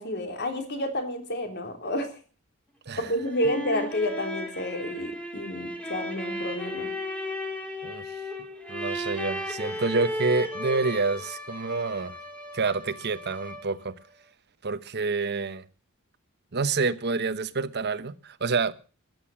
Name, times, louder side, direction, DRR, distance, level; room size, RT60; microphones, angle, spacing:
voice 1, 0.0-2.1 3.0-6.9, left 1 dB, 50° left, 3.2 m, -30 dB
sound 1, 3.0-13.9, left 1 dB, 5° left, 2.6 m, -35 dB
voice 2, 7.8-8.2 8.7-12.2 12.5-13.9 14.6-15.7 16.5-18.7, right 4 dB, 50° right, 1.0 m, -28 dB
14.5 x 10.5 x 7.6 m
head